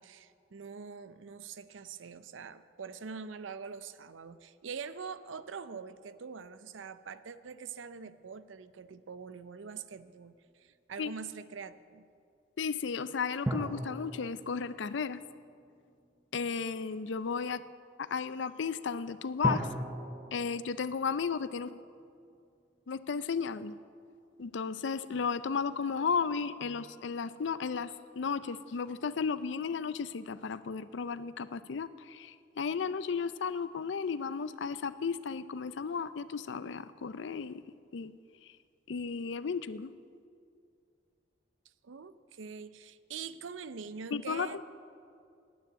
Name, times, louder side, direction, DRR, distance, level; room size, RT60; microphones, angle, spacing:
voice 1, 0.0-12.1 41.8-44.6, right 5 dB, 80° right, 14 dB, 0.5 m, -44 dB
voice 2, 12.6-15.2 16.3-17.6 18.0-19.7 20.3-21.8 22.9-23.7 24.4-37.6 37.9-38.1 38.9-39.9 44.1-44.5, left 5 dB, 70° left, 15 dB, 0.4 m, -34 dB
sound 1, 13.4-16.1 19.4-22.0 22.3-22.4, right 1 dB, 15° right, 0.7 m, -38 dB
9.5 x 9.4 x 9.3 m, 2.4 s
head